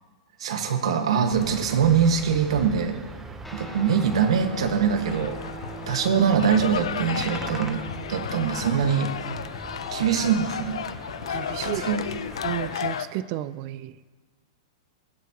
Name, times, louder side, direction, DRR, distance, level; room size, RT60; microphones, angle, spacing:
voice 1, 0.4-3.0 3.5-5.4 5.9-7.8 8.1-9.1 9.9-10.8 11.6-12.0, right 7 dB, 80° right, 5 dB, 1.7 m, -23 dB
sound 1, 1.3-12.8, right 3 dB, 10° right, 0.9 m, -41 dB
Guitar, 3.4-13.0, right 1 dB, 5° left, 2.2 m, -44 dB
sound 2, 5.1-13.1, left 8 dB, 85° left, 0.6 m, -33 dB
voice 2, 11.3-11.8 12.4-13.9, right 14 dB, 45° right, 15 dB, 0.5 m, -32 dB
21.0 x 8.3 x 3.0 m, 1.4 s
hypercardioid pair, 140°, 3 cm